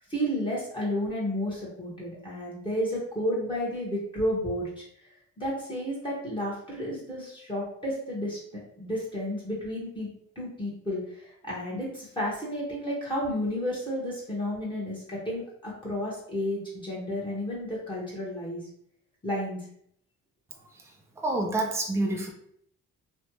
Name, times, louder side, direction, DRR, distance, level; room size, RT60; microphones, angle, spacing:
voice 1, 0.1-4.8 5.4-18.7 19.2-19.6, equal, 15° left, -6 dB, 1.4 m, -32 dB
voice 2, 21.2-22.3, right 2 dB, 10° right, 0 dB, 0.6 m, -27 dB
3.3 x 2.5 x 3.0 m, 0.68 s
cardioid pair, 90°, 30 cm